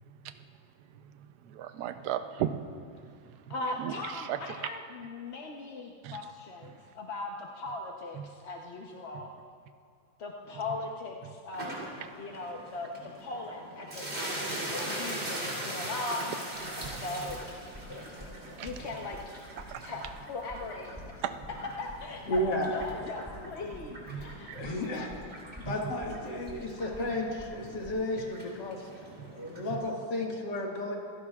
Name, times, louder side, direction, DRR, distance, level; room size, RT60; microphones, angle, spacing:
voice 1, 1.6-2.6 3.8-3.9 4.3-4.4 6.0-6.2 16.9-17.0 18.6-18.7 19.7-19.8 21.2-21.3 24.1-24.2 24.6-24.7 25.7-25.8, right 11 dB, 70° right, 9 dB, 1.1 m, -33 dB
voice 2, 3.5-9.3 10.2-11.8 12.2-16.6 17.0-17.4 17.9-18.1 18.6-19.2 19.8-24.5, left 2 dB, 45° left, 0 dB, 0.9 m, -39 dB
sound 1, 11.5-29.8, right 1 dB, 35° right, 3.6 m, -41 dB
Real heartbeat sound fastest, 16.5-28.0, equal, 5° right, 3.0 m, -49 dB
voice 3, 22.3-22.7 24.5-25.1 25.6-28.9 29.3-31.0, left 1 dB, 70° left, -1 dB, 2.4 m, -33 dB
27.0 x 16.5 x 2.4 m, 2.2 s
omnidirectional pair, 2.0 m